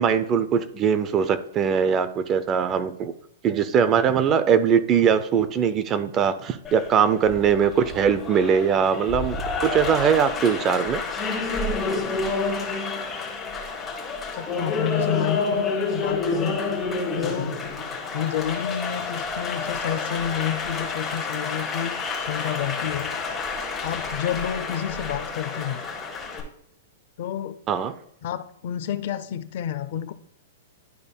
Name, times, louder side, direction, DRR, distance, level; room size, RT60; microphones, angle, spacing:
voice 1, 0.0-3.1 3.4-11.0 27.7-27.9, right 7 dB, 20° right, 12 dB, 0.4 m, -21 dB
Applause, 6.6-26.4, left 4 dB, 10° left, 1.4 m, -29 dB
voice 2, 14.3-16.6 17.2-17.6 18.1-23.1 23.8-25.8 27.2-27.6 28.2-30.1, left 10 dB, 45° left, 13 dB, 0.5 m, -29 dB
11.5 x 5.2 x 2.2 m, 0.71 s
supercardioid pair, 175°, 0 cm